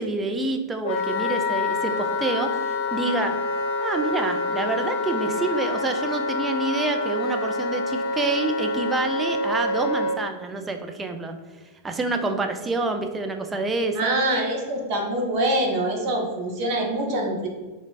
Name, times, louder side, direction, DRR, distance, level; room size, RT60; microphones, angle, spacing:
voice 1, 0.0-3.4 3.8-11.3 11.8-14.1, right 3 dB, 15° right, 5 dB, 0.4 m, -27 dB
Wind instrument woodwind instrument, 0.8-10.2, left 3 dB, 55° left, 0.4 m, -27 dB
voice 2, 13.9-17.5, right 1 dB, 45° right, 1 dB, 0.8 m, -24 dB
3.0 x 2.4 x 4.1 m, 1.3 s
figure-of-eight pair, 90°, 0 cm